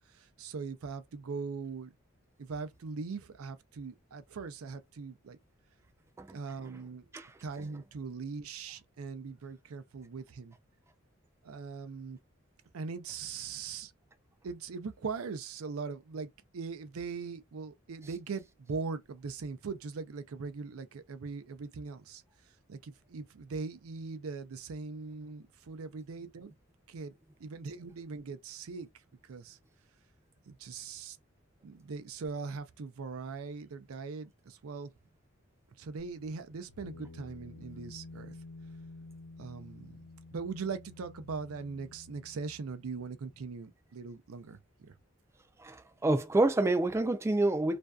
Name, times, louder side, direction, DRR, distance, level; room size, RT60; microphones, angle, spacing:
voice 1, 0.1-1.9 2.4-5.4 6.3-7.1 7.4-10.6 11.4-12.2 12.7-13.9 14.4-22.2 22.7-26.5 26.9-27.1 27.4-28.9 29.2-29.6 30.5-31.2 31.6-34.9 35.8-38.3 39.4-40.0 40.3-44.9, right 4 dB, 90° right, 0.5 m, -40 dB
sound 1, 36.0-43.4, left 3 dB, 80° left, 0.7 m, -51 dB
voice 2, 45.6-47.8, right 2 dB, 15° right, 0.3 m, -28 dB
2.5 x 2.2 x 2.2 m
head